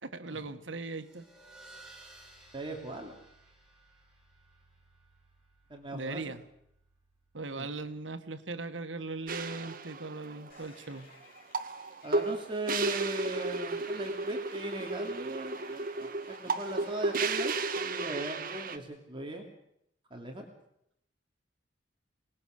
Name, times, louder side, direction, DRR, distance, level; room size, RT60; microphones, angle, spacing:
voice 1, 0.0-1.2 5.9-6.4 7.3-11.1, right 3 dB, 90° right, 10 dB, 1.6 m, -39 dB
sound 1, 0.7-7.8, right 2 dB, 5° right, 5.8 m, -58 dB
voice 2, 2.5-3.1 5.7-6.2 7.5-7.7 12.0-19.4 20.1-20.5, right 1 dB, 30° right, 2 dB, 2.9 m, -39 dB
sound 2, 9.3-18.8, right 3 dB, 50° right, 1.4 m, -34 dB
sound 3, 10.5-17.8, left 5 dB, 55° left, 7.9 m, -59 dB
27.0 x 20.0 x 6.7 m, 0.76 s
head